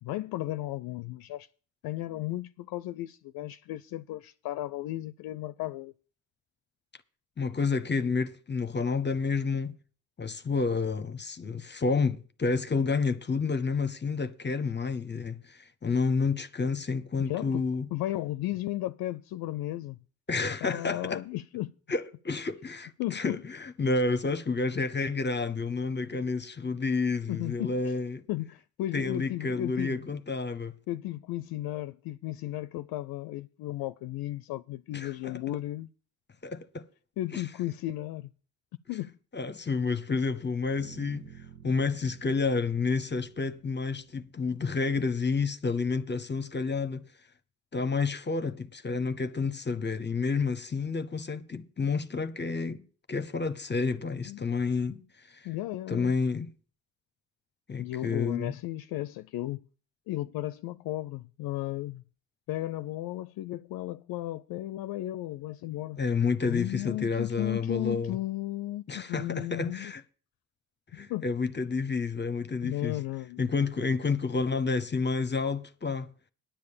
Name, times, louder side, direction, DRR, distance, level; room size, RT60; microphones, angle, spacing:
voice 1, 0.0-1.5 1.8-5.9 17.2-17.7 17.9-20.0 20.6-21.7 23.0-23.4 27.3-27.7 28.3-30.1 30.9-35.9 37.2-38.3 38.9-39.1 54.3-54.4 55.4-56.1 57.8-59.6 60.1-62.0 62.5-66.0 66.4-69.9 71.1-71.2 72.6-73.4, left 15 dB, 70° left, 0.5 m, -34 dB
voice 2, 7.4-9.8 10.2-17.9 20.3-21.2 21.9-28.2 28.9-30.8 34.9-35.4 36.4-36.9 37.3-37.4 39.3-41.2 41.6-47.1 47.7-55.5 55.9-56.5 57.7-58.5 66.0-68.2 68.9-70.0 70.9-73.0 73.4-76.1, left 4 dB, 30° left, 0.8 m, -30 dB
sound 1, 40.8-44.8, right 8 dB, 90° right, 1.6 m, -52 dB
10.5 x 6.6 x 7.1 m
hypercardioid pair, 50°, 37 cm